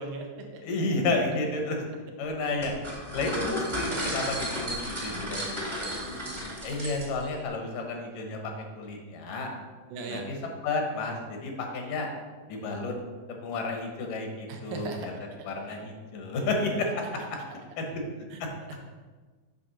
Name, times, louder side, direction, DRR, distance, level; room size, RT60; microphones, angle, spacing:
voice 1, 0.0-0.6 6.0-6.5 9.9-10.3 14.5-15.1 16.4-16.8, right 3 dB, 75° right, 2 dB, 2.2 m, -38 dB
voice 2, 0.6-1.8 2.2-2.7 3.1-5.9 6.6-9.5 10.1-12.1 12.5-12.9 13.4-15.1 15.4-17.0 17.8-17.9 18.4-18.5, left 3 dB, 75° left, 2 dB, 2.5 m, -31 dB
sound 1, 2.6-7.3, equal, 15° right, 1.0 m, -33 dB
8.0 x 3.5 x 6.0 m, 1.4 s
omnidirectional pair, 3.8 m